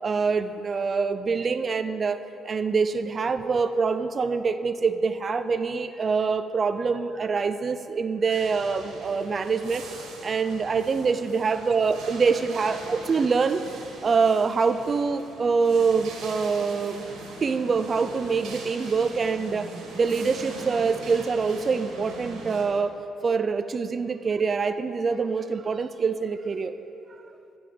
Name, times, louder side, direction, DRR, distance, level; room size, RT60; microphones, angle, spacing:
voice 1, 0.0-9.8 10.2-13.6 14.0-17.0 17.4-22.9 23.2-26.7, right 5 dB, 40° right, 11 dB, 0.5 m, -25 dB
sound 1, 8.3-22.6, right 2 dB, 85° right, 2.0 m, -41 dB
11.5 x 5.4 x 7.8 m, 2.8 s
cardioid pair, 90°, 0 cm